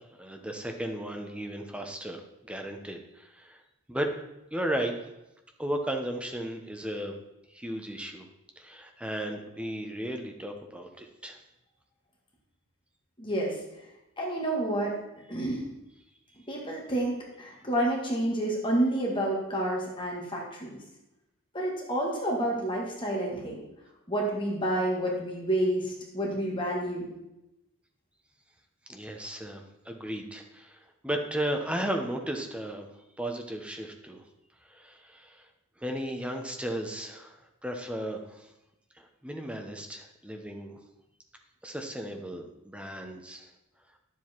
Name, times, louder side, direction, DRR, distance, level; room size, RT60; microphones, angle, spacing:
voice 1, 0.2-3.6 3.9-4.2 4.5-5.0 5.6-7.2 7.5-8.3 8.6-11.4 28.9-32.9 33.2-34.2 34.7-35.5 35.8-37.4 37.6-38.5 39.0-40.8 41.6-43.5, right 1 dB, 5° right, 3 dB, 0.9 m, -35 dB
voice 2, 13.2-13.6 14.2-14.9 15.3-15.6 16.5-20.8 21.5-23.6 24.1-27.1, right 1 dB, 25° left, -2 dB, 2.1 m, -29 dB
10.5 x 7.4 x 4.5 m, 0.91 s
head